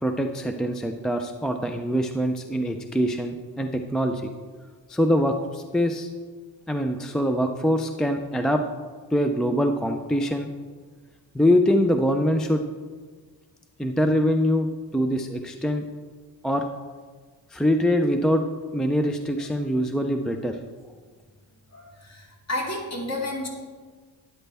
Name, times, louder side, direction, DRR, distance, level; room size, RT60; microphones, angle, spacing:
voice 1, 0.0-4.3 4.9-6.1 6.7-8.6 9.1-10.5 11.3-12.6 13.8-15.8 16.4-16.7 17.5-18.4 18.7-20.6, equal, ahead, 5 dB, 0.3 m, -24 dB
voice 2, 21.7-23.5, left 1 dB, 40° left, -2 dB, 2.7 m, -31 dB
12.5 x 10.5 x 3.4 m, 1.5 s
wide cardioid pair, 145°, 42 cm